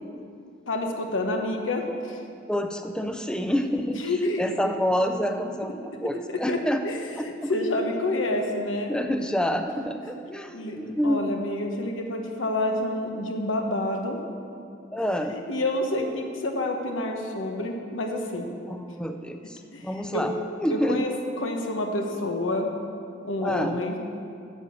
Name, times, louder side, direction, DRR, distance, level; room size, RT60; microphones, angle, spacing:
voice 1, 0.7-2.2 4.0-4.5 6.3-7.0 7.5-9.0 10.1-10.2 10.5-14.2 15.3-18.5 19.7-20.3 20.7-21.1 21.4-22.7 23.2-23.9, left 1 dB, 90° left, 3 dB, 1.2 m, -28 dB
voice 2, 2.5-6.8 7.2-7.5 8.9-11.3 14.9-15.4 18.7-20.4 20.6-21.1 23.4-23.8, equal, 5° left, 6 dB, 0.4 m, -28 dB
9.7 x 6.7 x 6.8 m, 2.5 s
head